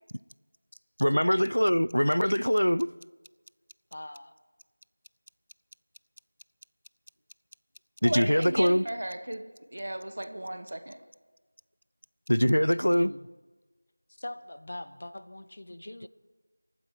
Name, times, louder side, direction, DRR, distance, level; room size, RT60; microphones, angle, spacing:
voice 1, 1.0-2.9 8.0-8.8 12.3-13.1, equal, 80° left, 0.4 m, -23 dB
voice 2, 3.9-4.3 12.8-13.3 14.2-16.1, left 1 dB, 35° left, 0.8 m, -42 dB
voice 3, 8.0-11.0, right 1 dB, 45° right, 1.1 m, -35 dB
26.5 x 9.4 x 4.8 m
figure-of-eight pair, 175°, 0 cm